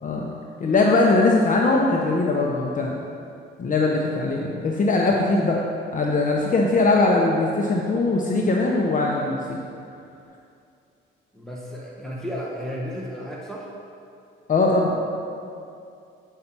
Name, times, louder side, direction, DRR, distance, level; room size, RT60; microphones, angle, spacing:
voice 1, 0.0-0.3 0.6-3.0 3.6-5.6 5.9-9.6 14.5-15.0, left 3 dB, 40° left, -1 dB, 0.9 m, -21 dB
voice 2, 11.3-13.7, equal, ahead, -4 dB, 1.3 m, -33 dB
8.3 x 5.5 x 6.1 m, 2.5 s
cardioid pair, 90°, 20 cm